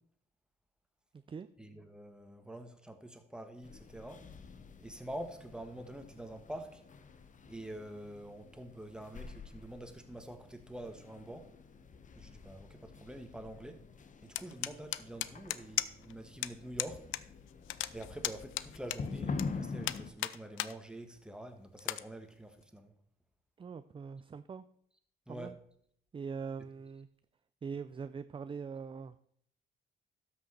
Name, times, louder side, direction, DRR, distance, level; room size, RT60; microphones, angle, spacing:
voice 1, 1.6-4.2 4.8-6.8 7.5-11.5 12.1-13.8 14.2-17.0 17.9-22.9 25.3-25.5, right 1 dB, 5° right, 6 dB, 1.4 m, -46 dB
sound 1, 3.6-20.1, left 4 dB, 40° left, 0.9 m, -46 dB
sound 2, 14.4-16.1 16.4-16.5 16.8-17.2 17.5-19.4 19.8-20.7 21.2-21.3 21.8-22.0, left 15 dB, 90° left, 0.5 m, -35 dB
voice 2, 23.6-24.6 25.3-25.6 26.1-27.1 27.6-29.2, right 5 dB, 25° right, 12 dB, 0.4 m, -42 dB
12.5 x 6.3 x 4.3 m, 0.67 s
cardioid pair, 90°, 20 cm